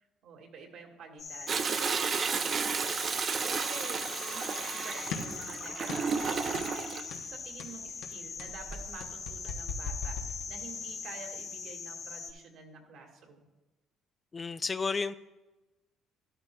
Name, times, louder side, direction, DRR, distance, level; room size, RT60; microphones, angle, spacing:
voice 1, 0.2-2.6 3.4-13.5, right 4 dB, 75° right, 2 dB, 1.8 m, -48 dB
sound 1, 1.2-12.3, left 5 dB, 50° left, 2.2 m, -41 dB
Toilet flush, 1.5-7.0 8.5-9.0 9.4-9.5, right 5 dB, 40° right, 0.5 m, -32 dB
sound 2, 5.1-5.4 5.9-6.2 6.5-6.8 7.1-7.3 7.6-10.9, left 5 dB, 85° left, 1.0 m, -40 dB
voice 2, 14.3-15.1, left 4 dB, 25° left, 13 dB, 0.3 m, -32 dB
12.5 x 11.5 x 2.3 m, 1.1 s
cardioid pair, 105°, 0 cm